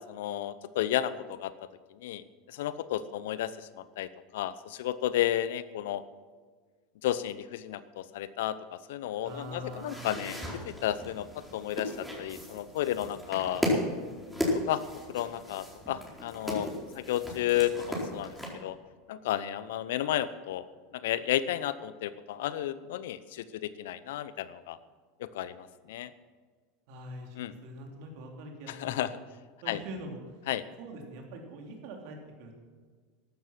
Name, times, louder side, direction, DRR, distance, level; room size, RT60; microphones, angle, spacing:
voice 1, 0.0-1.5 1.9-2.2 2.5-6.0 7.0-10.4 10.6-13.6 14.7-14.8 15.1-16.7 16.9-18.8 19.1-20.6 20.9-24.8 25.2-26.1 27.4-27.5 28.7-29.1 29.7-29.8 30.5-30.6, left 12 dB, 70° left, 15 dB, 0.7 m, -32 dB
voice 2, 9.2-10.1 26.9-27.4 27.6-29.1 29.6-30.4 30.8-32.5, right 1 dB, 60° right, 2 dB, 3.5 m, -43 dB
sound 1, 9.3-18.5, left 1 dB, ahead, 4.6 m, -36 dB
14.0 x 12.0 x 6.1 m, 1.5 s
hypercardioid pair, 85°, 0 cm